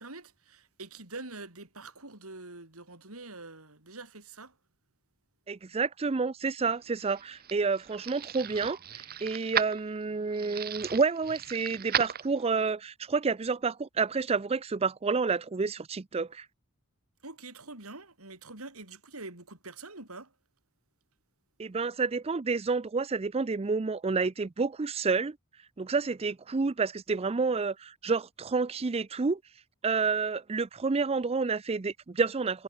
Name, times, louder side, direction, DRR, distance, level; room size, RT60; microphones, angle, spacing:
voice 1, 0.0-4.6 17.2-20.3, right 3 dB, 85° right, 5.8 m, -45 dB
voice 2, 5.5-16.5 21.6-25.4 25.8-29.4 29.8-32.6, right 4 dB, 30° right, 0.5 m, -29 dB
sound 1, 6.8-12.7, right 9 dB, 45° right, 1.1 m, -36 dB
head